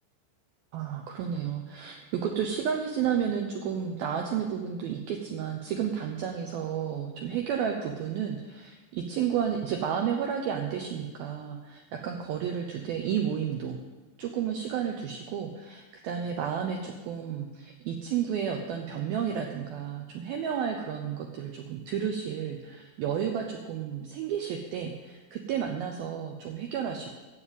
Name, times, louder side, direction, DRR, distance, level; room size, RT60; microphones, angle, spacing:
voice 1, 0.7-13.8 14.2-27.1, right 8 dB, 90° right, 3 dB, 2.1 m, -32 dB
12.0 x 7.5 x 8.4 m, 1.3 s
omnidirectional pair, 5.5 m